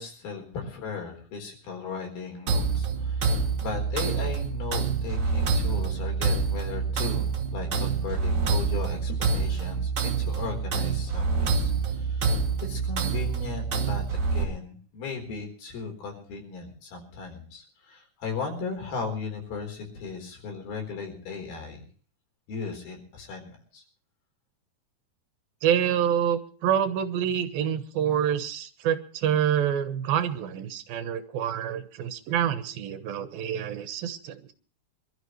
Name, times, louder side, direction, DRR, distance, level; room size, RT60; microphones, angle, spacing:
voice 1, 0.0-21.8 22.5-23.8, left 5 dB, 90° left, 3 dB, 6.0 m, -37 dB
sound 1, 2.5-14.4, right 5 dB, 55° right, 3.7 m, -27 dB
voice 2, 25.6-34.5, right 9 dB, 80° right, 10 dB, 3.0 m, -27 dB
25.5 x 13.0 x 3.2 m, 0.42 s
omnidirectional pair, 4.2 m